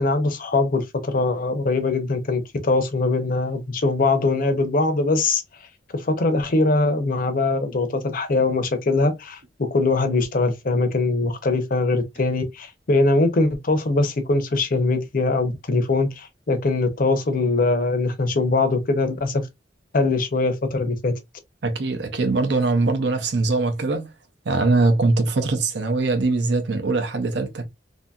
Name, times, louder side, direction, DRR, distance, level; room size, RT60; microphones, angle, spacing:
voice 1, 0.0-5.4 5.9-19.4 19.9-21.1, left 3 dB, 50° left, 0.6 m, -22 dB
voice 2, 21.6-24.1 24.4-27.7, right 3 dB, 65° right, 0.6 m, -22 dB
2.7 x 2.7 x 2.3 m
head